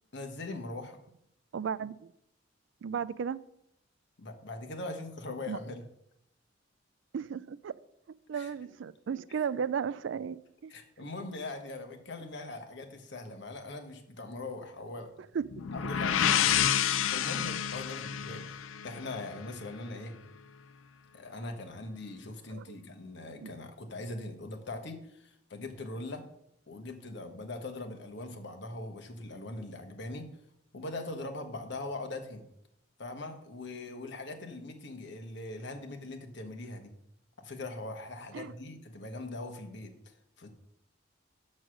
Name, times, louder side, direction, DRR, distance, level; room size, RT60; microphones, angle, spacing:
voice 1, 0.1-1.0 4.2-5.8 8.3-8.5 10.7-15.1 15.7-20.1 21.1-26.3 26.7-30.3 30.7-32.5 33.0-36.9 37.4-39.9 40.4-40.5, left 2 dB, 65° left, 5 dB, 1.2 m, -41 dB
voice 2, 1.5-2.1 2.8-3.4 5.5-5.6 7.1-7.8 8.3-10.7 15.3-15.5 22.5-22.8 23.4-23.5 38.3-38.5, right 7 dB, 70° right, 18 dB, 0.3 m, -35 dB
sound 1, 15.5-19.3, left 9 dB, 85° left, 0.4 m, -29 dB
6.5 x 6.4 x 6.3 m, 0.76 s
head